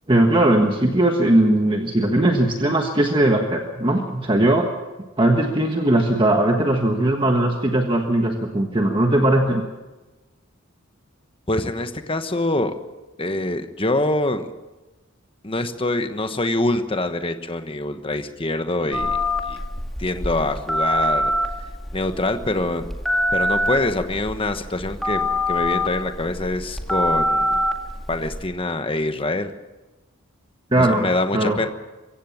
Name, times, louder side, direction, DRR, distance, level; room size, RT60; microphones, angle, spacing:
voice 1, 0.1-4.7 5.2-9.6 30.7-31.6, right 1 dB, 25° right, 3 dB, 1.4 m, -19 dB
voice 2, 11.5-12.7 13.2-14.5 15.4-19.2 19.5-19.6 20.0-21.3 21.9-22.9 23.3-27.6 28.1-29.5 30.8-31.7, left 2 dB, 25° left, 8 dB, 1.2 m, -25 dB
Telephone, 18.9-28.5, left 1 dB, ahead, 1.9 m, -25 dB
23.0 x 16.0 x 7.3 m, 1.1 s
head